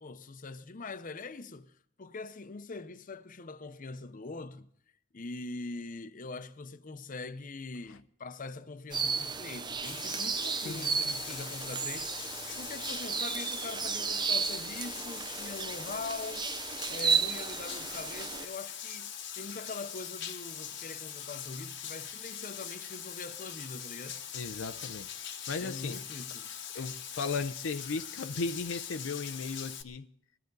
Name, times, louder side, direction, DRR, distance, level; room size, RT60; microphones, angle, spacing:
voice 1, 0.0-4.7 5.1-16.5 16.9-24.2 25.6-26.5, left 3 dB, 45° left, 0.7 m, -43 dB
sound 1, 8.9-18.5, right 6 dB, 25° right, 0.5 m, -33 dB
Bathtub (filling or washing), 9.8-29.8, left 9 dB, 65° left, 1.1 m, -42 dB
voice 2, 24.3-25.1 25.5-26.0 26.7-30.1, left 4 dB, 85° left, 0.6 m, -36 dB
21.0 x 13.5 x 4.0 m
head